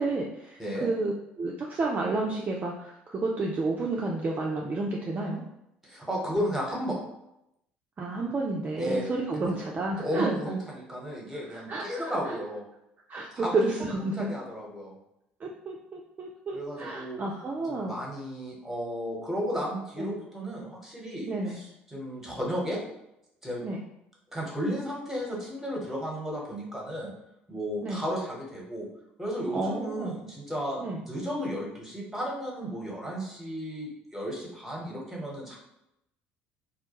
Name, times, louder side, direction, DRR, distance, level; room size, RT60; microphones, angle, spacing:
voice 1, 0.0-5.4 8.0-10.3 11.4-12.4 13.1-14.3 15.4-17.9 20.0-20.1 21.3-21.6 23.6-23.8 27.8-28.0 29.5-30.2 30.8-31.0, right 2 dB, 30° right, -1 dB, 0.4 m, -31 dB
voice 2, 5.8-7.0 8.8-9.0 9.3-9.5 10.0-12.7 13.3-13.6 14.2-15.0 16.5-17.2 17.7-22.8 23.4-23.6 24.3-27.1 27.5-28.9 29.2-35.6, equal, 5° right, -3 dB, 1.0 m, -33 dB
2.3 x 2.1 x 2.9 m, 0.83 s
figure-of-eight pair, 55°, 6 cm